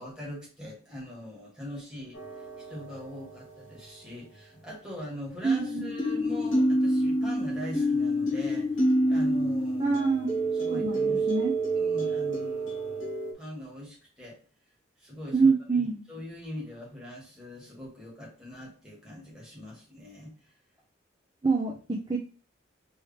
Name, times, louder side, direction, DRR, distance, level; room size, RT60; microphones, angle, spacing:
voice 1, 0.0-2.2 2.6-10.0 10.5-11.3 11.7-13.1 13.3-14.4 15.0-20.5, left 1 dB, 5° right, -5 dB, 2.0 m, -42 dB
sound 1, 2.1-3.0 5.5-13.3, right 1 dB, 75° left, 1.6 m, -27 dB
voice 2, 5.4-5.9 9.8-10.3 10.7-11.5 15.3-16.0 21.4-22.2, right 4 dB, 20° right, -1 dB, 0.6 m, -26 dB
4.7 x 3.1 x 3.5 m, 0.38 s
head